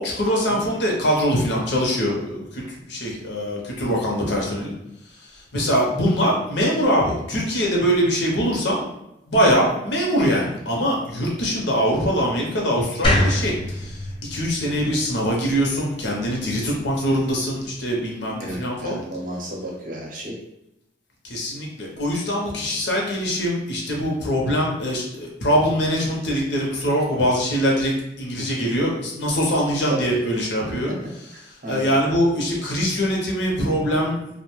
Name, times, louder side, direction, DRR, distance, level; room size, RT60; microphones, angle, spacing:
voice 1, 0.0-4.7 5.2-8.9 9.3-19.0 21.2-27.9 28.2-31.0 31.7-34.2, equal, 65° left, -2 dB, 0.7 m, -23 dB
sound 1, 13.0-16.2, left 1 dB, 30° left, 0.4 m, -25 dB
voice 2, 18.4-20.4 28.4-28.6 29.9-30.0 31.6-31.9, right 1 dB, 45° right, -2 dB, 0.6 m, -32 dB
2.6 x 2.1 x 3.0 m, 0.84 s
head